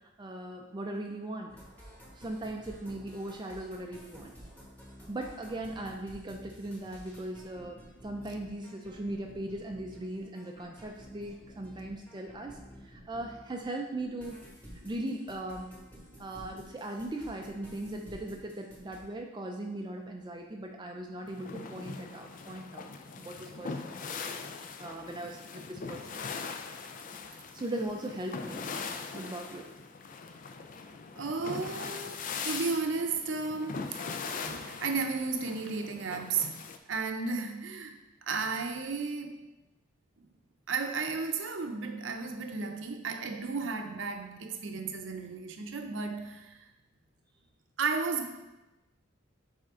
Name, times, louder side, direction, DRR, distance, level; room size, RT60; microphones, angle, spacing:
voice 1, 0.2-1.5 2.2-4.3 5.1-14.4 14.8-15.7 16.2-22.9 23.2-24.4 24.8-26.2 27.5-28.7 29.1-29.7, right 1 dB, 20° right, 2 dB, 0.4 m, -39 dB
sound 1, 1.5-13.7 14.0-19.0, equal, 10° left, 1.4 m, -51 dB
sound 2, 21.3-36.8, left 5 dB, 40° left, 0.4 m, -41 dB
voice 2, 31.2-34.0 34.4-36.5 36.9-39.4 40.7-46.6 47.8-48.4, right 4 dB, 65° right, 5 dB, 0.7 m, -34 dB
7.3 x 4.3 x 3.7 m, 1.0 s
head